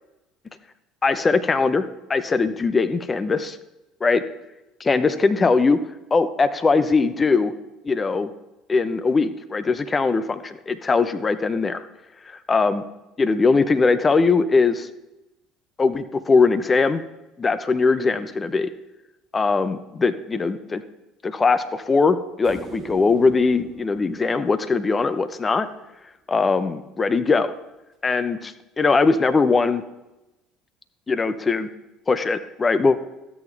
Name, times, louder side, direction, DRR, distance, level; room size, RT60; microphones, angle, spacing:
voice 1, 1.0-3.6 4.0-4.2 4.8-5.8 6.1-7.5 7.8-8.3 8.7-11.8 12.3-12.8 13.2-14.9 15.8-17.0 17.4-18.7 19.3-20.8 21.2-25.7 26.3-27.5 28.0-29.8 31.1-31.7 32.1-33.0, left 4 dB, 25° left, 12 dB, 0.8 m, -20 dB
sound 1, 22.4-25.7 28.3-28.4, right 4 dB, 35° right, 1.8 m, -41 dB
13.0 x 8.6 x 3.4 m, 0.98 s
hypercardioid pair, 60°, 0 cm